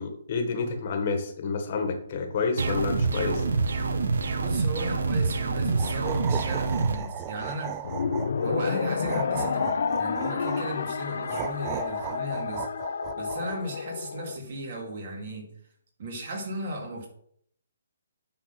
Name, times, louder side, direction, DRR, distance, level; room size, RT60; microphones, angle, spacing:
voice 1, 0.0-3.4, left 4 dB, 40° left, 5 dB, 1.5 m, -29 dB
sound 1, 2.6-7.0, right 4 dB, 70° right, 1.0 m, -26 dB
voice 2, 4.4-7.8 8.4-12.7 13.1-15.5 16.0-17.1, right 1 dB, 45° right, 1 dB, 2.7 m, -35 dB
sound 2, 5.7-8.5 9.0-10.6 11.3-13.6, right 10 dB, 20° right, 0.4 m, -36 dB
sound 3, 7.8-14.4, left 5 dB, 65° left, 0.7 m, -30 dB
9.5 x 4.2 x 5.9 m, 0.65 s
hypercardioid pair, 160°, 0 cm